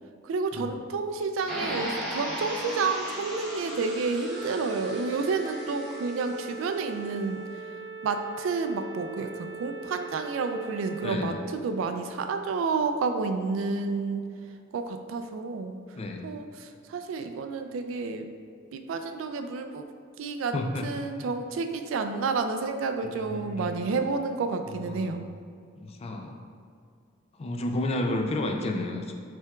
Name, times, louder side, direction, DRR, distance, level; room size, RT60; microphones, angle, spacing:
voice 1, 0.2-7.7 8.0-14.3 14.7-15.8 16.2-18.3 18.7-19.9 20.2-20.5 20.8-25.2, right 4 dB, 75° right, 7 dB, 0.3 m, -30 dB
sound 1, 1.5-6.5, equal, ahead, 1.0 m, -37 dB
sound 2, 4.3-11.3, right 4 dB, 55° left, 0.8 m, -41 dB
voice 2, 11.0-11.3 16.0-16.3 20.5-20.9 21.2-21.3 23.2-23.7 24.9-25.1 25.8-26.4 27.4-29.1, left 1 dB, 30° left, 3 dB, 0.3 m, -31 dB
5.7 x 3.5 x 2.3 m, 2.2 s
head